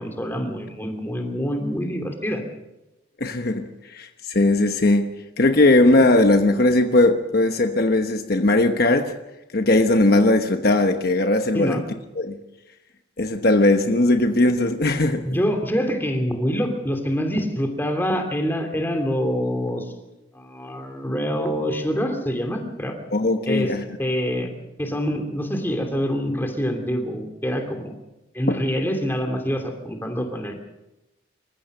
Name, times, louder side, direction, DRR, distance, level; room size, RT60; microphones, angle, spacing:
voice 1, 0.0-2.4 11.5-11.8 15.2-19.8 20.3-23.0 23.5-23.7 24.0-24.5 24.8-27.9 28.3-30.5, equal, 10° left, 2.8 m, -25 dB
voice 2, 3.2-5.1 5.4-9.1 9.5-11.8 12.2-12.4 13.2-15.2 23.1-23.8 28.5-28.6, left 2 dB, 50° left, 1.1 m, -19 dB
27.0 x 15.0 x 6.7 m
head